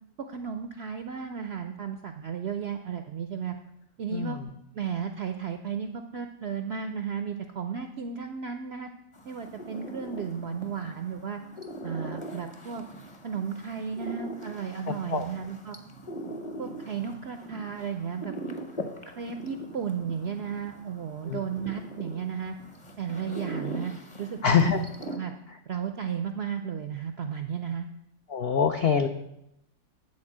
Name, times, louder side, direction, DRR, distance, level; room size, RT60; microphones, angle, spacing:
voice 1, 0.2-3.6 4.0-4.4 4.7-8.9 9.3-11.4 11.8-12.8 13.2-15.8 16.6-18.4 19.1-22.5 23.0-23.9 24.2-24.8 25.2-25.3 25.7-27.9, right 7 dB, 70° right, 7 dB, 0.6 m, -34 dB
voice 2, 4.1-4.5 14.9-15.3 21.2-21.4 24.4-24.8 28.3-29.1, left 6 dB, 75° left, 6 dB, 0.5 m, -24 dB
sound 1, 9.1-25.2, equal, 25° left, 0.7 m, -41 dB
9.7 x 4.4 x 7.3 m, 0.83 s
omnidirectional pair, 1.7 m